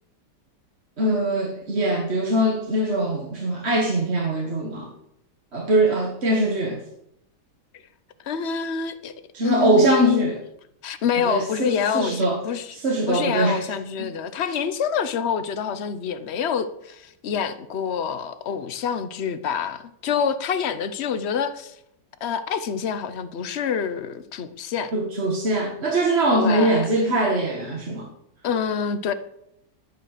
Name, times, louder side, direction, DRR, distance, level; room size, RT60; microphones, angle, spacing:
voice 1, 1.0-4.9 5.5-6.8 9.3-10.4 11.2-12.4 12.7-13.6 24.9-28.1, right 1 dB, 35° right, 1.6 m, -22 dB
voice 2, 8.2-9.1 9.4-10.3 10.8-12.7 13.1-21.8 22.2-24.9 26.3-26.9 28.4-29.1, left 7 dB, 60° left, 0.7 m, -27 dB
11.5 x 9.3 x 6.5 m
omnidirectional pair, 2.2 m